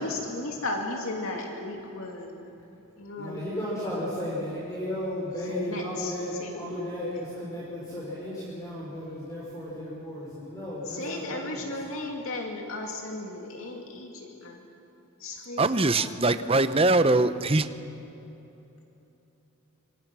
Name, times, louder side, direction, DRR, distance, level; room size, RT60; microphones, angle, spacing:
voice 1, 0.0-3.7 5.4-6.8 10.9-14.7 15.2-16.4, left 2 dB, 70° left, 1 dB, 2.5 m, -36 dB
voice 2, 3.2-11.6, left 1 dB, 15° left, -7 dB, 5.4 m, -34 dB
voice 3, 15.6-17.7, right 2 dB, 25° right, 11 dB, 0.8 m, -22 dB
26.5 x 26.0 x 6.2 m, 3.0 s
head